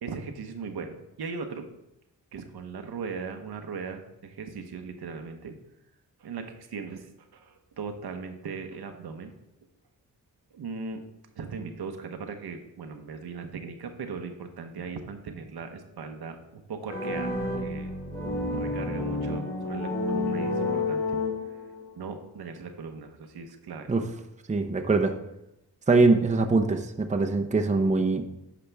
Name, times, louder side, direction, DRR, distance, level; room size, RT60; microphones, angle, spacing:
voice 1, 0.0-1.7 2.3-5.6 6.2-9.3 10.5-11.0 11.4-17.9 18.5-21.2 21.5-21.6 22.0-23.9, right 5 dB, 70° right, 6 dB, 1.0 m, -38 dB
sound 1, 16.9-21.8, left 2 dB, 30° left, 2.7 m, -30 dB
voice 2, 24.5-25.2 25.9-28.2, right 3 dB, 20° right, 5 dB, 0.7 m, -23 dB
9.9 x 5.1 x 3.4 m, 0.89 s
cardioid pair, 65°, 39 cm